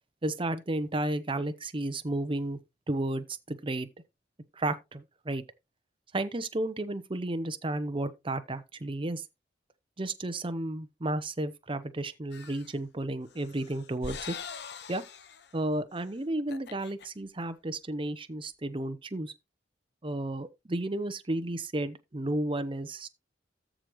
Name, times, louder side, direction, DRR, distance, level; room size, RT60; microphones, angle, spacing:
voice 1, 0.2-2.6 2.9-3.9 4.5-5.4 6.1-9.2 10.0-14.3 14.9-15.0 15.5-19.3 20.0-23.1, right 1 dB, 30° right, 0.8 m, -32 dB
sound 1, 12.3-12.8 13.3-15.5 15.9-16.1 16.4-17.1, left 6 dB, 65° left, 0.8 m, -43 dB
14.0 x 5.1 x 3.1 m
head